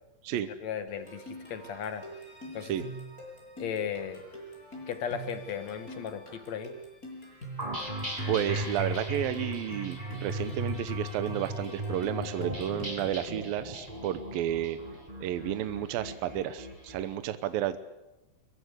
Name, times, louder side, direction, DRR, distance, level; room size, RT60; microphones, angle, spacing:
voice 1, 0.6-2.0 2.5-2.8 3.6-4.2 4.9-6.7, left 7 dB, 50° left, 9 dB, 2.8 m, -36 dB
sound 1, 0.9-13.2, right 1 dB, 20° left, 8.0 m, -45 dB
sound 2, 7.6-17.0, equal, 10° right, 7.7 m, -36 dB
voice 2, 8.3-14.8 15.2-17.8, right 11 dB, 75° right, 11 dB, 2.7 m, -32 dB
23.0 x 22.5 x 8.2 m, 1.0 s
omnidirectional pair, 4.4 m